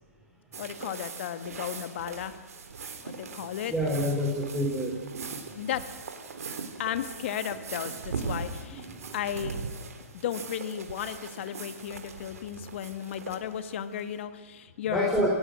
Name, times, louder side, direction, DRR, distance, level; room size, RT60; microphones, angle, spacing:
sound 1, 0.5-14.2, right 5 dB, 70° right, 3.5 m, -40 dB
voice 1, 0.6-2.4 3.0-3.7 5.6-5.8 6.8-8.9 9.1-9.7 10.1-15.1, left 10 dB, 50° left, 10 dB, 1.8 m, -34 dB
voice 2, 3.7-5.0 8.9-9.1 14.9-15.3, equal, ahead, -3 dB, 3.6 m, -27 dB
28.0 x 18.5 x 6.4 m, 1.4 s
hypercardioid pair, 135°, 8 cm